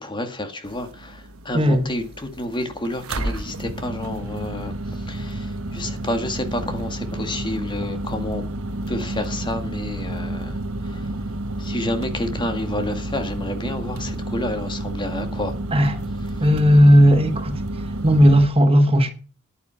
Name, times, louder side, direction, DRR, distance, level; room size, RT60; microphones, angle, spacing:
voice 1, 0.0-8.4 8.9-10.6 10.8-11.1 11.6-15.5, left 1 dB, 20° left, 1.9 m, -30 dB
sound 1, 0.7-18.5, right 1 dB, 75° right, 1.3 m, -30 dB
voice 2, 1.5-1.9 15.7-16.0 16.4-17.6 18.0-19.1, equal, 25° right, 1.3 m, -15 dB
11.0 x 9.4 x 5.7 m
head